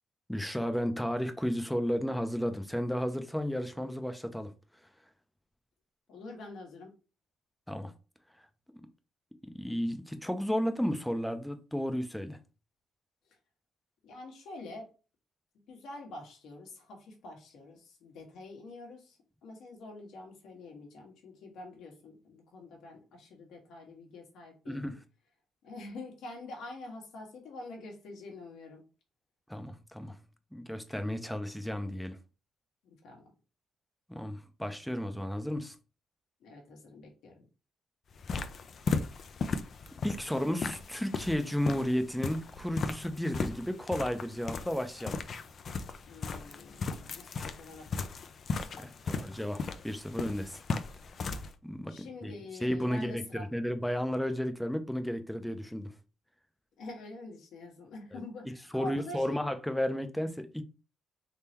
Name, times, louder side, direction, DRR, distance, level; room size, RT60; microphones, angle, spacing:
voice 1, 0.3-4.5 7.7-7.9 8.4-8.5 9.5-12.4 24.7-25.0 29.5-30.2 30.5-32.2 34.1-35.8 40.0-45.2 48.8-50.6 51.6-52.3 52.6-55.9 58.1-58.2 58.7-60.6, equal, 5° left, 0.6 m, -33 dB
voice 2, 6.1-6.9 13.3-13.4 14.0-14.9 15.7-24.9 25.6-28.8 32.8-33.3 36.4-37.5 46.0-48.3 51.9-53.5 56.8-59.4, left 2 dB, 80° left, 1.4 m, -46 dB
sound 1, 38.1-51.5, left 4 dB, 50° left, 0.4 m, -37 dB
3.7 x 3.2 x 2.9 m
cardioid pair, 90°, 0 cm